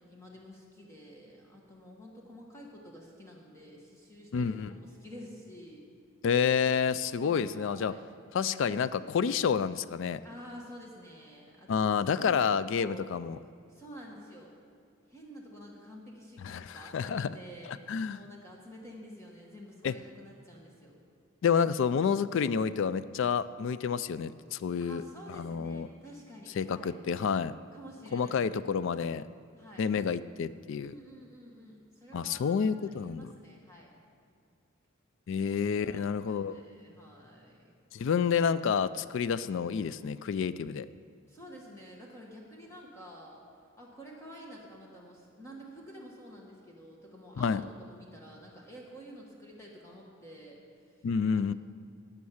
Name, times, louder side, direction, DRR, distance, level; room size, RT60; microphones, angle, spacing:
voice 1, 0.1-5.8 7.2-8.0 10.2-11.9 12.2-13.2 13.7-14.5 15.1-20.9 24.8-26.9 27.7-28.6 29.6-29.9 30.8-33.9 35.8-37.7 41.3-43.4 43.8-47.5 47.8-51.5, equal, 15° left, -2 dB, 1.5 m, -50 dB
voice 2, 4.3-4.7 6.2-7.9 8.3-10.2 11.7-13.4 16.4-17.3 17.9-18.2 19.8-19.9 21.4-25.0 25.3-25.9 26.6-27.5 28.1-29.3 29.8-30.9 32.1-33.3 35.3-36.6 37.9-40.9 47.4-47.6 51.0-51.5, left 6 dB, 60° left, 15 dB, 0.3 m, -29 dB
12.5 x 8.8 x 7.1 m, 2.3 s
head